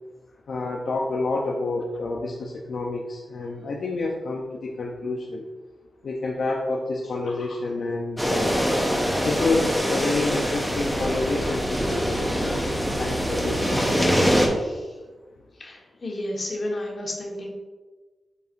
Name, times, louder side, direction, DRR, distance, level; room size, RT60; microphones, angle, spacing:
voice 1, 0.5-5.4 6.0-8.5 9.2-12.7 13.0-14.3, left 3 dB, 70° left, -2 dB, 0.7 m, -28 dB
sound 1, 8.2-14.5, equal, 5° right, 1.0 m, -24 dB
voice 2, 14.5-14.9 15.6-17.5, left 1 dB, 45° left, -2 dB, 1.5 m, -33 dB
8.1 x 4.7 x 2.6 m, 1.3 s
wide cardioid pair, 100°, 0 cm